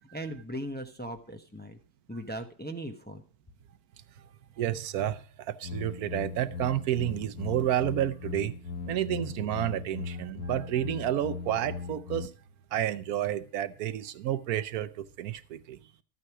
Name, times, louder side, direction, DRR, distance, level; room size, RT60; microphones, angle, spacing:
voice 1, 0.1-1.8 2.1-3.2, right 1 dB, 10° left, 0.8 m, -38 dB
voice 2, 4.6-8.5 8.9-12.3 12.7-15.8, right 11 dB, 85° right, 1.2 m, -30 dB
sound 1, 5.6-12.3, left 5 dB, 80° left, 1.4 m, -39 dB
13.0 x 8.8 x 4.8 m
omnidirectional pair, 1.5 m